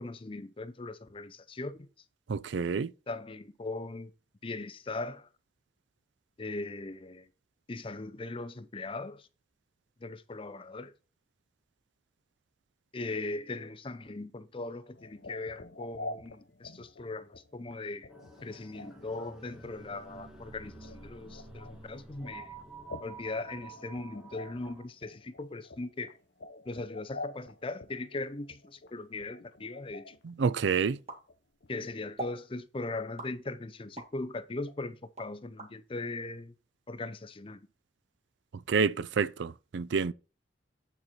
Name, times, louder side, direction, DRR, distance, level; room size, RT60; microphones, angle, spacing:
voice 1, 0.0-1.9 3.1-4.1 4.4-5.3 6.4-7.3 7.7-9.3 10.0-10.9 12.9-18.1 18.4-22.5 23.0-26.2 26.7-30.2 31.7-36.5 36.9-37.7, left 2 dB, 30° left, 0.6 m, -39 dB
voice 2, 2.3-2.9 30.2-31.0 38.5-40.1, right 5 dB, 80° right, 0.4 m, -29 dB
sound 1, 15.0-30.3 30.6-31.0 31.3-31.4 31.6-31.7, left 2 dB, 65° left, 0.7 m, -47 dB
sound 2, 18.1-24.9, right 3 dB, 5° right, 1.5 m, -49 dB
sound 3, 31.1-31.8 32.2-32.4 33.2-34.2 34.7-35.7, right 2 dB, 35° right, 1.8 m, -42 dB
9.1 x 4.4 x 4.2 m
head